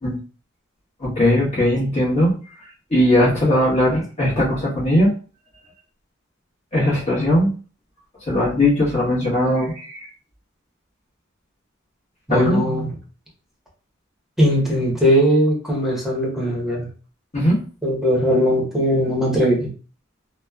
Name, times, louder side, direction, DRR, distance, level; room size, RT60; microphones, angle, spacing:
voice 1, 1.0-2.3 2.9-5.1 6.7-7.5 8.2-10.1 12.3-12.6 17.3-17.6, left 1 dB, 35° left, -6 dB, 1.1 m, -19 dB
voice 2, 12.3-12.9 14.4-16.9 17.8-19.7, equal, ahead, -3 dB, 0.9 m, -19 dB
3.0 x 2.0 x 2.3 m, 0.39 s
head